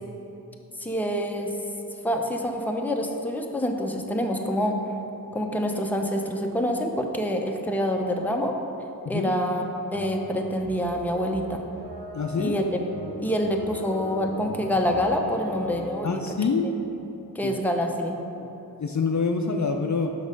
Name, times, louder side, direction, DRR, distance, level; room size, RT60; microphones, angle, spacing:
voice 1, 0.8-1.5 2.0-4.8 5.3-8.5 9.1-11.6 12.4-12.8 13.2-16.2 16.6-16.7 17.3-18.2, equal, 5° left, 2 dB, 0.6 m, -26 dB
sound 1, 9.9-16.4, right 1 dB, 85° right, 1.4 m, -39 dB
voice 2, 12.1-12.6 16.0-16.7 17.4-17.6 18.4-18.5 18.8-20.1, left 5 dB, 50° left, 4 dB, 0.5 m, -26 dB
6.1 x 5.4 x 5.1 m, 3.0 s
wide cardioid pair, 55°, 37 cm